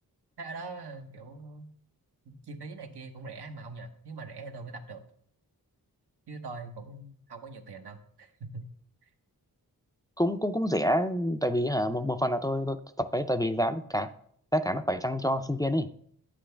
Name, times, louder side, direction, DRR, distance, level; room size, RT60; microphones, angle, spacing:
voice 1, 0.4-1.6 2.2-5.0 6.3-8.6, right 3 dB, 90° right, 5 dB, 1.0 m, -42 dB
voice 2, 10.2-14.1 14.5-15.9, equal, 10° left, 9 dB, 0.4 m, -27 dB
9.3 x 7.5 x 3.4 m, 0.64 s
wide cardioid pair, 70°, 38 cm